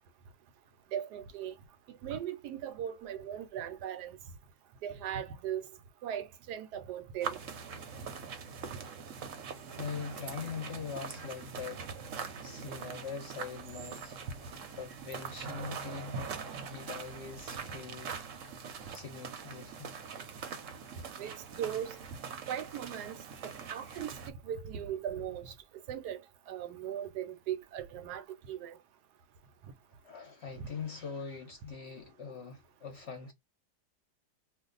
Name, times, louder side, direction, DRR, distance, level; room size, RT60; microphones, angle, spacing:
voice 1, 0.9-1.5 1.9-4.2 4.8-5.7 6.0-7.4 21.2-21.9 22.5-23.2 23.7-24.1 24.4-25.5 25.9-26.2 26.5-28.8, right 10 dB, 80° right, 1.1 m, -38 dB
sound 1, 7.2-24.3, right 6 dB, 60° right, 0.9 m, -43 dB
voice 2, 9.8-11.8 12.4-14.5 14.8-16.2 16.7-18.5 18.9-19.9 21.0-21.1 30.0-33.3, left 5 dB, 55° left, 0.8 m, -42 dB
2.5 x 2.3 x 3.8 m
omnidirectional pair, 1.7 m